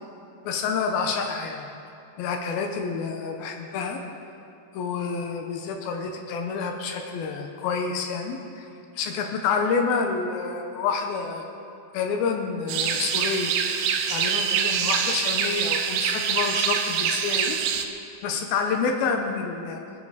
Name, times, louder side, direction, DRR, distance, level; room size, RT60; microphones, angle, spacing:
voice 1, 0.4-1.7 2.2-4.0 4.7-8.6 9.0-11.4 11.9-13.5 14.1-17.6 18.2-19.8, left 5 dB, 80° left, 3 dB, 2.1 m, -28 dB
sound 1, 12.7-17.9, right 7 dB, 80° right, 3.0 m, -25 dB
24.0 x 10.0 x 4.1 m, 2.7 s
omnidirectional pair, 5.5 m